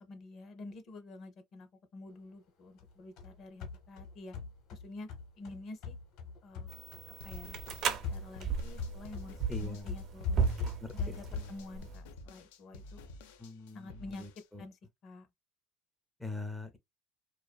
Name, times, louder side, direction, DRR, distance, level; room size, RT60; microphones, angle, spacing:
voice 1, 0.0-4.4 4.7-5.1 5.4-6.0 6.4-6.7 7.2-7.6 7.8-13.0 13.7-14.2 14.6-15.3, left 2 dB, 50° left, 0.7 m, -49 dB
sound 1, 2.8-7.1 7.3-11.7, left 4 dB, 65° left, 1.2 m, -41 dB
sound 2, 6.7-12.0, right 6 dB, 50° right, 0.5 m, -36 dB
sound 3, 7.2-14.5, left 2 dB, 90° left, 0.4 m, -51 dB
voice 2, 9.5-9.9 10.8-11.5 13.4-14.6 16.2-16.8, left 2 dB, 5° left, 0.4 m, -43 dB
2.5 x 2.3 x 2.2 m
supercardioid pair, 105°, 0 cm